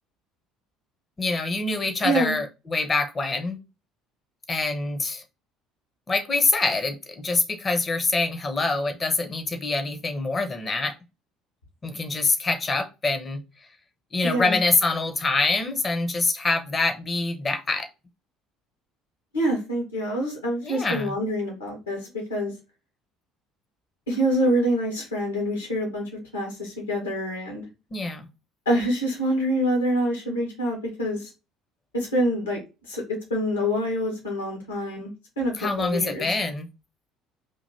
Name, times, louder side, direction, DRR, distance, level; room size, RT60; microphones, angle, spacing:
voice 1, 1.2-3.6 4.5-5.2 6.1-10.9 11.8-13.4 14.1-17.9 20.6-21.1 27.9-28.3 35.6-36.7, left 3 dB, 25° left, 0.8 m, -25 dB
voice 2, 2.0-2.4 14.2-14.6 19.3-22.5 24.1-26.0 26.3-27.7 28.6-31.3 31.9-32.6 32.9-36.3, equal, 75° left, 1.5 m, -26 dB
5.3 x 2.9 x 2.7 m
figure-of-eight pair, 55°, 0 cm